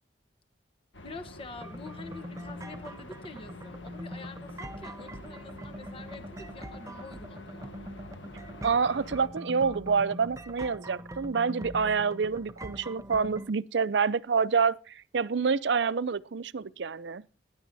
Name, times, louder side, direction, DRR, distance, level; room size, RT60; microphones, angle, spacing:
sound 1, 0.9-9.3, left 1 dB, 85° left, 1.6 m, -47 dB
voice 1, 1.0-7.7, left 3 dB, 30° left, 1.0 m, -46 dB
sound 2, 1.6-13.5, equal, 15° right, 0.5 m, -43 dB
voice 2, 8.6-17.2, right 5 dB, 70° right, 0.5 m, -27 dB
19.0 x 10.5 x 2.7 m
head